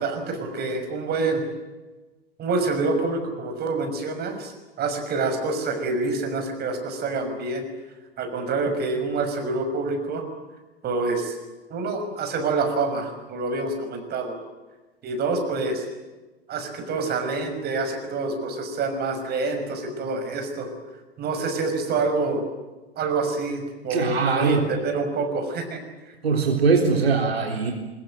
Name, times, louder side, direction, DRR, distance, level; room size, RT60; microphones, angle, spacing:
voice 1, 0.0-1.4 2.4-4.5 4.8-7.6 8.2-10.2 10.8-11.4 11.7-14.4 15.0-15.8 16.5-20.7 21.2-22.4 23.0-25.8 26.1-26.2, right 3 dB, 30° right, 6 dB, 6.2 m, -27 dB
voice 2, 23.9-24.7 26.2-27.7, right 5 dB, 75° right, 2 dB, 3.8 m, -21 dB
24.0 x 21.5 x 9.0 m, 1.2 s
figure-of-eight pair, 95°, 31 cm